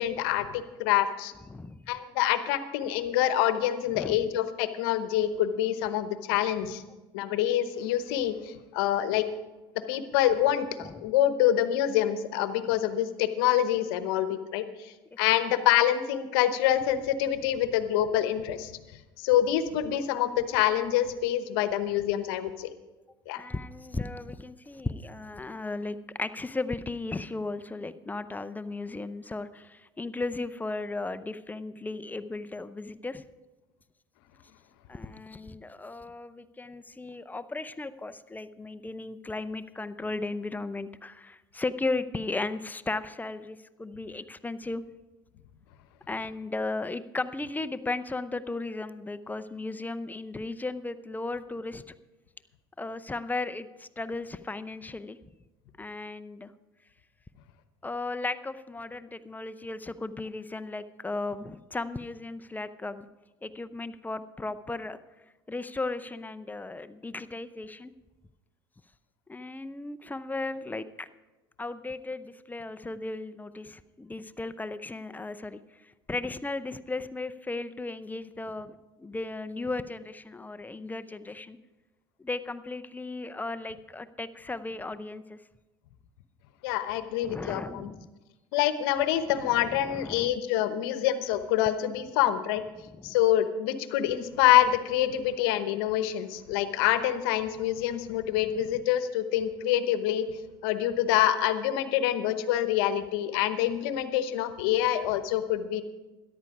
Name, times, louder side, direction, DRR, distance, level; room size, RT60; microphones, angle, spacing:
voice 1, 0.0-1.3 1.9-6.8 7.1-9.3 9.9-18.7 19.2-22.7 23.3-23.4 86.6-87.9 88.5-92.6 93.0-105.8, left 12 dB, 75° left, 11 dB, 1.0 m, -26 dB
voice 2, 1.5-1.9 3.9-4.3 10.8-10.9 23.3-33.2 34.9-44.8 46.1-51.8 52.8-55.2 55.8-56.5 57.8-63.1 63.4-65.0 65.5-67.9 69.3-71.1 71.6-81.6 82.2-85.4 87.2-88.1 89.6-90.3 93.0-93.2, left 3 dB, 15° left, 11 dB, 0.6 m, -36 dB
13.5 x 11.0 x 4.9 m, 1.1 s
hypercardioid pair, 75°, 12 cm